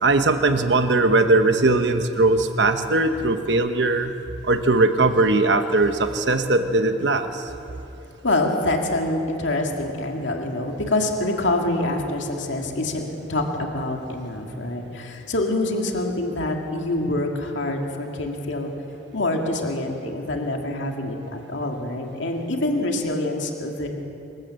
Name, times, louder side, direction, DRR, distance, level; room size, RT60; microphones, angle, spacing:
voice 1, 0.0-4.1 4.4-7.5, right 2 dB, 70° right, 8 dB, 1.0 m, -20 dB
voice 2, 8.2-13.0 13.3-18.7 19.1-23.9, left 2 dB, 85° left, 2 dB, 2.1 m, -26 dB
26.5 x 13.5 x 7.6 m, 2.9 s
head